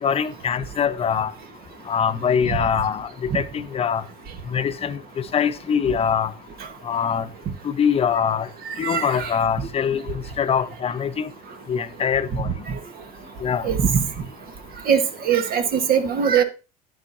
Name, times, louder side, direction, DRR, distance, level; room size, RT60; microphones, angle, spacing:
voice 1, 0.0-1.3 1.9-4.0 4.5-6.3 6.8-7.3 7.6-8.5 8.8-11.3 11.7-12.5 13.4-13.6, left 7 dB, 30° left, 0.9 m, -23 dB
voice 2, 8.6-9.3 12.7-12.8 13.6-14.0 14.9-15.0 15.2-16.4, right 7 dB, 50° right, 1.5 m, -21 dB
10.0 x 9.9 x 2.7 m
supercardioid pair, 85°, 19 cm